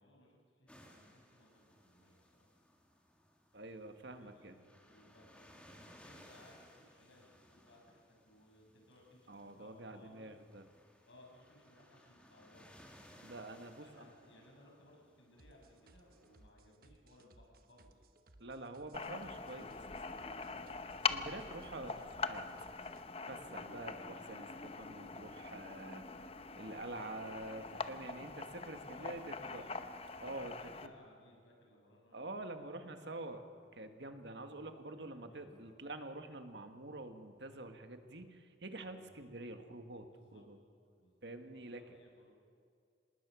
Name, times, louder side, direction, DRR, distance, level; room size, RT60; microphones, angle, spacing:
voice 1, 0.0-2.5 4.2-10.3 11.0-12.9 13.8-18.0 24.1-24.4 28.8-29.9 30.1-33.4 34.2-34.6 35.0-35.7 38.8-39.3 40.1-40.5 41.0-42.3, left 1 dB, 85° left, -1 dB, 6.3 m, -63 dB
sound 1, 0.7-16.5, equal, 5° left, 2.4 m, -63 dB
voice 2, 3.5-4.6 9.3-10.7 13.2-14.1 18.4-20.0 21.1-22.5 23.3-24.5 24.8-26.2 26.6-29.6 30.2-30.5 30.8-30.9 32.1-33.4 33.7-40.6 41.2-41.8, right 2 dB, 70° right, 7 dB, 1.7 m, -47 dB
sound 2, 15.4-23.0, right 2 dB, 50° right, 1.2 m, -63 dB
sound 3, 18.9-30.9, left 4 dB, 30° left, 0.8 m, -43 dB
26.0 x 19.5 x 6.3 m, 2.3 s
head